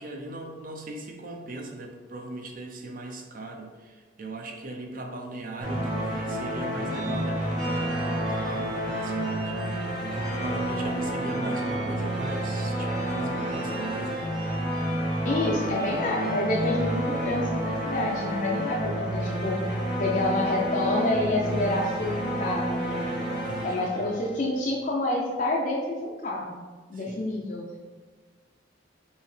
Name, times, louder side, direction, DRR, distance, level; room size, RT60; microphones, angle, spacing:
voice 1, 0.0-14.3 23.3-23.9 26.9-27.2, right 2 dB, 45° right, 2 dB, 0.6 m, -38 dB
sound 1, 5.6-24.5, right 1 dB, 20° right, 1.0 m, -30 dB
sound 2, 6.7-17.4, right 2 dB, 75° right, 1.5 m, -40 dB
voice 2, 15.2-19.6 20.0-23.1 23.6-26.6 26.9-27.6, left 2 dB, 40° left, -2 dB, 0.4 m, -28 dB
5.5 x 2.8 x 3.2 m, 1.4 s
head